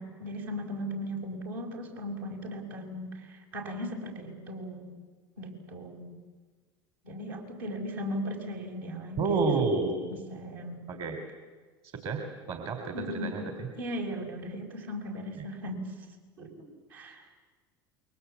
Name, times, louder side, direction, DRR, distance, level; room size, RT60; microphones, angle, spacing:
voice 1, 0.0-4.9 5.4-6.2 7.0-9.5 10.1-10.9 12.9-13.4 13.8-15.9 16.4-17.2, equal, 75° right, 1 dB, 6.3 m, -37 dB
voice 2, 9.2-10.0 10.9-11.2 11.8-13.7 15.4-15.5, right 4 dB, 55° right, 5 dB, 3.8 m, -30 dB
28.5 x 23.5 x 8.4 m, 1.4 s
hypercardioid pair, 75°, 12 cm